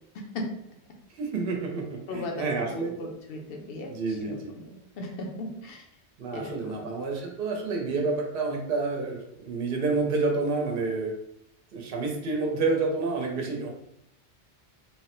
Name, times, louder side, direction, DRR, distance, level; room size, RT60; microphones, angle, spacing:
voice 1, 0.1-0.5 2.1-5.9 6.3-6.8, left 2 dB, 65° left, 1 dB, 0.8 m, -37 dB
voice 2, 1.1-3.1 3.9-4.5 6.2-11.1 11.7-13.7, right 3 dB, 60° right, 1 dB, 0.8 m, -29 dB
3.0 x 2.0 x 2.9 m, 0.77 s
omnidirectional pair, 1.1 m